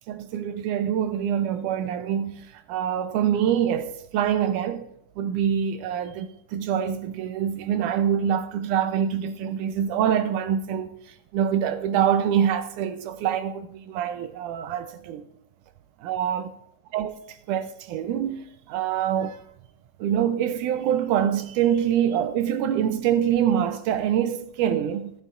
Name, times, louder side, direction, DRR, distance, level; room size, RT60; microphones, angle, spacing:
voice 1, 0.1-4.9 5.2-15.3 16.0-16.5 16.9-19.4 20.0-25.1, right 9 dB, 80° right, 2.1 m, -25 dB
17.0 x 11.0 x 2.5 m
omnidirectional pair, 3.8 m